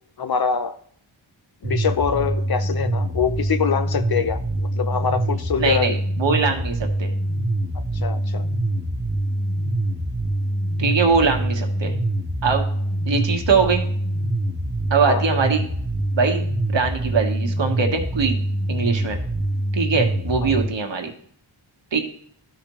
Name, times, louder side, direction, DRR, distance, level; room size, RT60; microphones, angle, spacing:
voice 1, 0.2-0.8 1.6-6.0 7.7-8.4 15.1-15.2 20.4-20.5, left 6 dB, 50° left, 10 dB, 0.6 m, -24 dB
sound 1, 1.6-20.7, right 1 dB, 25° right, 1.1 m, -24 dB
voice 2, 5.6-7.1 10.8-11.9 12.4-12.6 13.1-13.8 14.9-15.6 16.1-16.4 16.7-19.2 19.7-21.1 21.9-22.0, right 5 dB, 65° right, 4 dB, 1.4 m, -22 dB
12.5 x 5.1 x 3.0 m, 0.63 s
cardioid pair, 60°, 48 cm